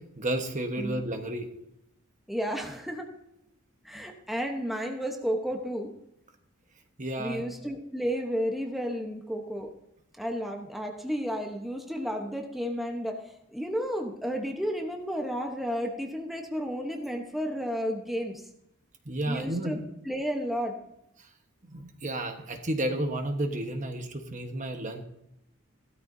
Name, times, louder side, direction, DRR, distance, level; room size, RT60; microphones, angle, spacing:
voice 1, 0.2-1.5 7.0-7.4 19.0-19.8 21.7-25.0, right 1 dB, 35° right, 5 dB, 1.2 m, -31 dB
voice 2, 2.3-3.1 3.8-5.9 7.2-9.7 10.2-13.2 13.5-18.4 19.3-19.8 20.0-20.7, equal, ahead, 2 dB, 1.0 m, -32 dB
16.0 x 13.0 x 2.7 m, 0.83 s
head